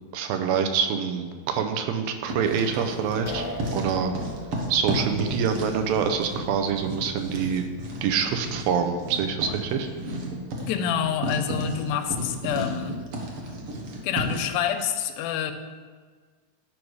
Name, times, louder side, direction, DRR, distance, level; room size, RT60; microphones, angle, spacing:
voice 1, 0.1-3.5 3.7-4.1 4.7-7.6 8.0-9.9, right 7 dB, 85° right, 6 dB, 2.6 m, -26 dB
Writing, 2.1-3.3 3.6-14.5, right 1 dB, 60° right, 1.5 m, -33 dB
sound 1, 3.3-10.2, left 1 dB, 70° left, 1.5 m, -42 dB
voice 2, 10.7-13.0 14.0-15.5, left 8 dB, 90° left, 7 dB, 2.5 m, -27 dB
11.0 x 5.4 x 4.7 m, 1.5 s
omnidirectional pair, 4.2 m